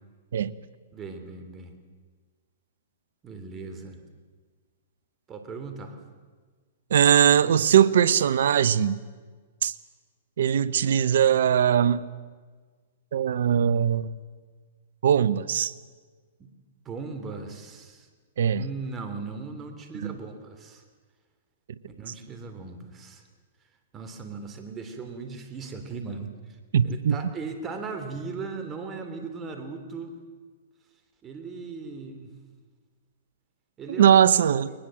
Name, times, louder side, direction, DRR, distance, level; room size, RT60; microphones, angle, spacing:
voice 1, 0.9-1.7 3.2-4.0 5.3-6.0 16.4-16.5 16.8-18.1 18.5-20.8 21.9-23.2 23.9-26.3 26.8-30.1 31.2-32.3 33.8-34.1, right 4 dB, 20° right, 7 dB, 3.2 m, -38 dB
voice 2, 6.9-9.0 9.6-9.7 10.4-12.0 13.1-14.1 15.0-15.7 18.4-18.7 20.0-20.1 26.7-27.1 34.0-34.7, right 9 dB, 70° right, 17 dB, 0.9 m, -20 dB
21.5 x 20.5 x 7.7 m, 1.5 s
hypercardioid pair, 130°, 0 cm